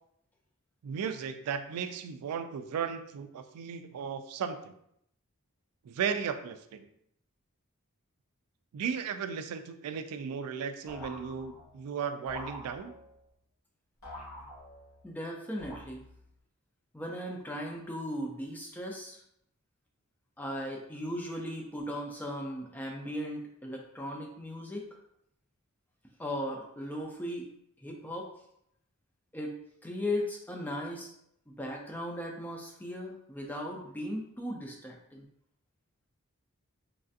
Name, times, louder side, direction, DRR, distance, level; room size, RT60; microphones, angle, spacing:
voice 1, 0.8-4.8 5.8-6.9 8.7-12.9, right 7 dB, 85° right, 10 dB, 0.3 m, -35 dB
sound 1, 10.9-11.8 12.3-13.2 14.0-15.0 15.6-16.3, left 1 dB, 70° left, 1.4 m, -46 dB
voice 2, 15.0-16.0 16.9-19.2 20.4-25.0 26.2-27.5 27.8-28.3 29.3-31.1 31.5-35.3, equal, 10° left, 0 dB, 0.4 m, -37 dB
3.2 x 2.4 x 2.5 m, 0.73 s
head